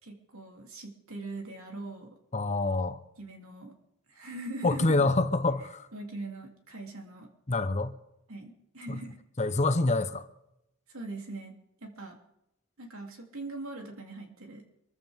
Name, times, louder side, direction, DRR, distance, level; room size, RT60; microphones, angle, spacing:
voice 1, 0.0-2.2 3.2-3.7 4.1-5.0 5.9-7.3 8.3-9.2 10.9-12.2 12.8-14.6, right 2 dB, 85° right, 3.0 m, -41 dB
voice 2, 2.3-3.0 4.6-5.9 7.5-8.0 8.9-9.0 9.4-10.3, left 2 dB, 30° left, 0.8 m, -26 dB
24.5 x 14.5 x 3.6 m
head